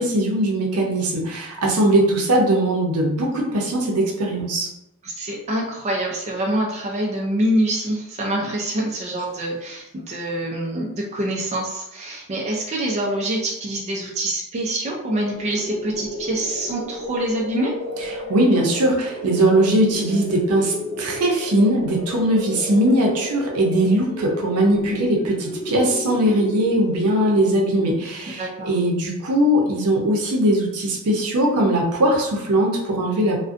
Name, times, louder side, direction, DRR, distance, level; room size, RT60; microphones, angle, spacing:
voice 1, 0.0-4.7 18.1-33.4, right 1 dB, 80° right, 0 dB, 0.6 m, -20 dB
voice 2, 5.0-17.7 28.4-28.7, right 1 dB, 30° right, -2 dB, 0.3 m, -25 dB
sound 1, 15.3-28.1, equal, 25° left, 0.7 m, -33 dB
2.5 x 2.1 x 2.4 m, 0.86 s
head